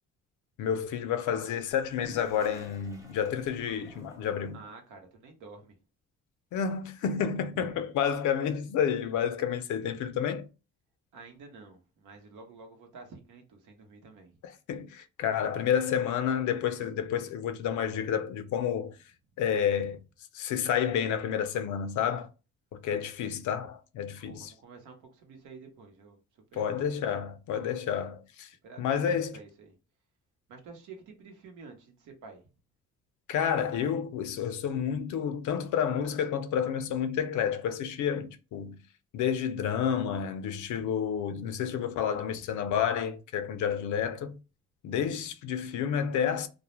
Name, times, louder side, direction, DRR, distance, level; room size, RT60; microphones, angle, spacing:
voice 1, 0.6-4.6 6.5-10.5 14.4-19.0 19.4-20.0 20.3-22.3 22.7-24.5 26.5-28.5 28.8-29.3 33.3-38.8 39.1-44.3 44.8-46.5, left 8 dB, 75° left, 0.5 m, -30 dB
Toilet flush, 1.7-4.7, left 2 dB, 10° right, 0.8 m, -51 dB
voice 2, 4.5-5.7 7.5-7.8 11.1-14.3 24.2-26.2 26.5-26.7 28.6-29.7 30.5-32.4, right 4 dB, 85° right, 0.9 m, -49 dB
2.3 x 2.1 x 2.9 m
cardioid pair, 90°, 30 cm